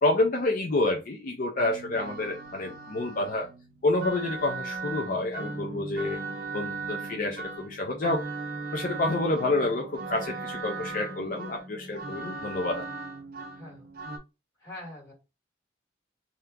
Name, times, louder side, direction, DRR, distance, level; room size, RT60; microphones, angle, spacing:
voice 1, 0.0-3.5 3.8-6.2 6.5-8.3 8.7-12.9, left 2 dB, 50° left, 1 dB, 0.4 m, -28 dB
sound 1, 1.6-14.2, right 3 dB, 50° right, 0.5 m, -38 dB
voice 2, 13.5-13.9 14.6-15.1, left 1 dB, 20° left, -5 dB, 1.6 m, -44 dB
2.8 x 2.2 x 3.4 m, 0.29 s
head